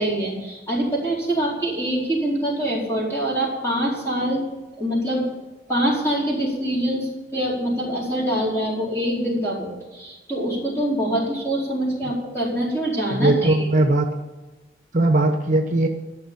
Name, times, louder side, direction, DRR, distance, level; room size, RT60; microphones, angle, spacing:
voice 1, 0.0-4.5 4.8-5.3 5.7-13.7, right 1 dB, 15° left, -5 dB, 4.5 m, -24 dB
voice 2, 13.1-14.1 14.9-15.9, right 2 dB, 40° right, 4 dB, 1.0 m, -19 dB
13.5 x 6.5 x 8.6 m, 1.2 s
head